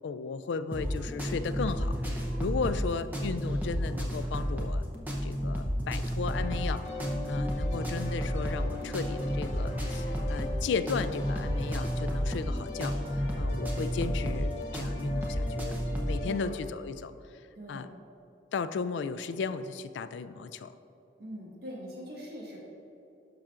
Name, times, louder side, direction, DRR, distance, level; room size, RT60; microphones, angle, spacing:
voice 1, 0.0-2.0 2.4-4.8 5.2-15.8 16.0-17.1 17.7-17.9 18.5-20.7, left 5 dB, 80° left, 12 dB, 0.3 m, -35 dB
sound 1, 0.7-16.2, equal, 10° right, 0.7 m, -31 dB
sound 2, 6.3-16.5, left 2 dB, 40° left, 0.8 m, -41 dB
voice 2, 16.2-16.5 17.5-17.9 21.2-22.6, equal, 60° right, -4 dB, 1.7 m, -42 dB
11.5 x 5.8 x 2.5 m, 2.9 s
head